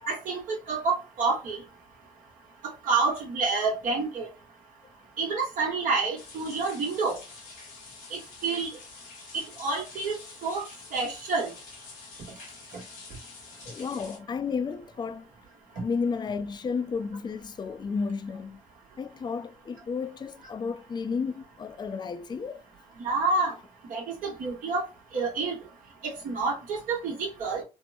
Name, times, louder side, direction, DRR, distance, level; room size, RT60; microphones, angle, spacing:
voice 1, 0.1-1.6 2.6-4.3 5.2-7.2 8.1-8.7 9.3-10.6 10.9-11.5 23.0-23.5 23.9-24.9 25.1-25.6 26.0-27.6, right 4 dB, 70° right, 1.2 m, -28 dB
sound 1, 6.2-14.2, left 4 dB, 85° left, 1.2 m, -47 dB
voice 2, 13.6-15.3 15.7-18.6 19.0-22.6, left 5 dB, 30° left, 0.4 m, -32 dB
3.5 x 2.1 x 2.6 m
supercardioid pair, 60°, 14 cm